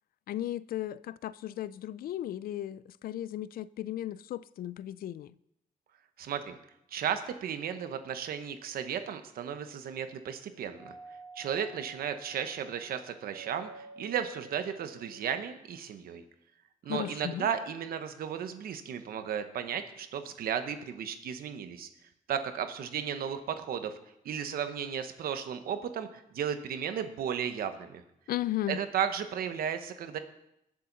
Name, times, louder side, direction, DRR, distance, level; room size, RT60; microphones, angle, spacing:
voice 1, 0.3-5.3 16.9-17.5 28.3-28.8, left 13 dB, 80° left, 0.4 m, -35 dB
voice 2, 6.2-6.5 6.9-10.9 11.4-16.2 16.8-21.9 22.3-24.0 24.2-28.0 28.7-30.2, right 8 dB, 90° right, 1.1 m, -34 dB
Doorbell, 10.8-15.6, right 3 dB, 25° right, 3.3 m, -51 dB
20.5 x 7.7 x 4.0 m
cardioid pair, 105°, 15 cm